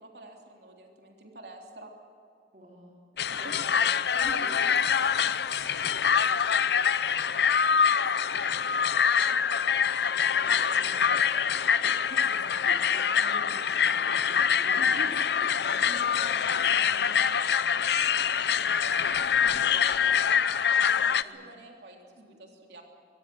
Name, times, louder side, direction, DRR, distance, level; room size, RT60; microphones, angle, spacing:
voice 1, 0.0-1.9 3.1-3.7 4.1-12.2 12.7-12.8 14.7-15.2 15.8-18.9 19.6-22.8, right 1 dB, 70° right, 2 dB, 3.5 m, -49 dB
voice 2, 2.5-2.9 3.6-3.8 4.1-4.6 10.7-11.0 12.2-12.4 12.7-15.5 15.9-16.0 19.4-19.7 21.2-21.4 22.2-22.3, right 1 dB, 45° right, -2 dB, 3.6 m, -47 dB
sound 1, 3.2-21.2, left 7 dB, 65° left, 0.6 m, -25 dB
23.5 x 21.0 x 7.9 m, 2.4 s
head